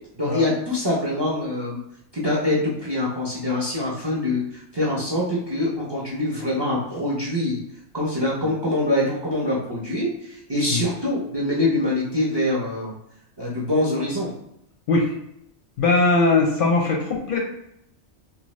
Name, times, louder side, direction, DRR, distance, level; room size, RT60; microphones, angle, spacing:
voice 1, 0.1-1.8 2.1-4.4 4.7-7.6 7.9-10.1 10.5-12.9 13.4-14.3, left 1 dB, 30° right, -4 dB, 0.5 m, -24 dB
voice 2, 15.8-17.4, left 3 dB, 60° left, 0 dB, 0.6 m, -20 dB
2.7 x 2.2 x 3.1 m, 0.77 s
omnidirectional pair, 1.2 m